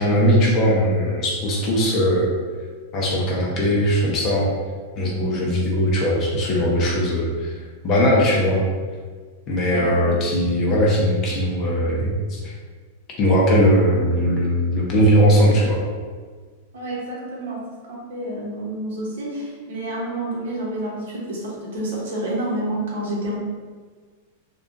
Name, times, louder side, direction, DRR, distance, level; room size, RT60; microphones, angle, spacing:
voice 1, 0.0-2.3 2.9-4.5 5.0-7.5 7.8-8.6 9.5-12.5 13.2-15.8, equal, 25° left, -3 dB, 0.6 m, -19 dB
voice 2, 9.7-10.3 16.7-23.4, right 1 dB, 65° right, -4 dB, 1.3 m, -29 dB
3.5 x 2.3 x 3.8 m, 1.5 s
supercardioid pair, 175°, 0 cm